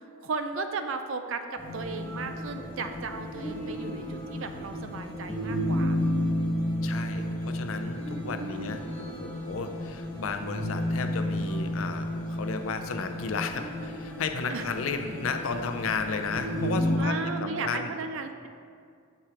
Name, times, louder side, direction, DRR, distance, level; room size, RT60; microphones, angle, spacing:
voice 1, 0.2-6.0 8.3-8.9 14.5-14.7 17.0-18.5, right 4 dB, 65° right, 7 dB, 0.5 m, -35 dB
sound 1, 1.6-17.0, equal, 10° left, 1.0 m, -32 dB
voice 2, 6.8-17.1 17.4-17.9, left 4 dB, 75° left, 7 dB, 0.5 m, -33 dB
7.0 x 4.4 x 4.9 m, 2.2 s
head